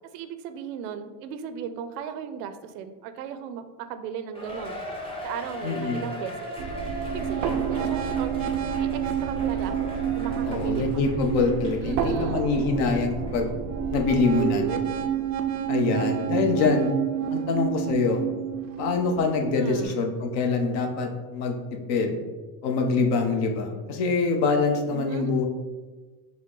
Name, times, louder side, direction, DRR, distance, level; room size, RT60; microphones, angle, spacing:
voice 1, 0.1-4.8 5.2-6.6 7.0-8.3 8.7-11.2 11.8-12.4 14.3-14.8 19.6-20.0 24.9-25.4, right 7 dB, 80° right, 9 dB, 0.6 m, -36 dB
Cheering, 4.3-12.1 12.5-12.6 13.3-13.4, equal, 10° left, 0.8 m, -38 dB
voice 2, 5.6-6.0 10.4-13.5 13.9-14.7 15.7-16.9 17.3-18.2 18.8-21.6 21.9-22.2 22.6-25.4, left 4 dB, 55° left, 3 dB, 0.8 m, -24 dB
sound 1, 6.6-19.8, right 8 dB, 40° right, 0.4 m, -29 dB
5.8 x 2.1 x 3.7 m, 1.3 s
supercardioid pair, 110°, 48 cm